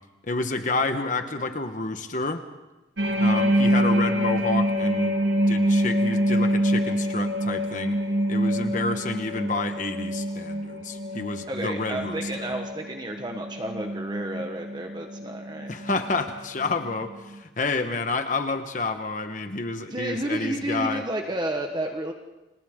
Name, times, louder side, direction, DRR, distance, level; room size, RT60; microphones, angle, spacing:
voice 1, 0.2-2.4 3.2-5.2 5.5-8.0 8.3-12.5 15.7-21.0, left 3 dB, 45° left, 7 dB, 1.3 m, -29 dB
sound 1, 3.0-16.5 16.8-17.1, equal, 85° right, 2.0 m, -26 dB
voice 2, 11.5-15.7 19.9-22.1, right 1 dB, 25° right, 3 dB, 1.3 m, -31 dB
30.0 x 26.5 x 3.8 m, 1.0 s
head